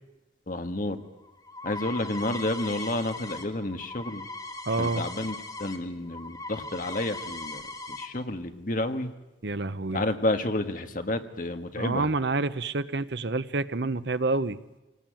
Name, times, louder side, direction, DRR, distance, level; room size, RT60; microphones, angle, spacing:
voice 1, 0.5-1.0 1.6-4.3 4.8-7.6 7.9-9.1 9.9-12.1, left 1 dB, 45° left, 7 dB, 1.7 m, -30 dB
sound 1, 1.0-5.8 6.0-8.1, left 2 dB, 20° left, 2.1 m, -39 dB
voice 2, 4.7-5.0 9.4-10.0 11.8-14.6, right 3 dB, 70° right, 14 dB, 0.9 m, -28 dB
25.5 x 18.5 x 9.1 m, 1.0 s
head